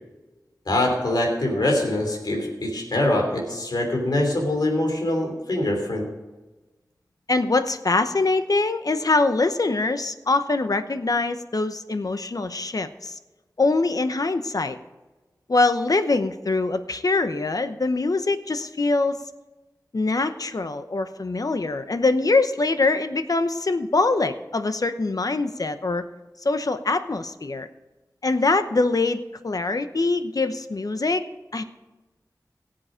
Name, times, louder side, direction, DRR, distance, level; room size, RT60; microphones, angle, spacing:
voice 1, 0.7-6.1, left 1 dB, 85° left, 1 dB, 3.1 m, -24 dB
voice 2, 7.3-13.2 13.6-14.8 15.5-19.2 19.9-26.0 26.4-27.7 28.2-31.2 31.5-31.6, left 3 dB, 65° left, 10 dB, 0.8 m, -23 dB
17.5 x 7.7 x 5.1 m, 1.1 s
wide cardioid pair, 50°, 7 cm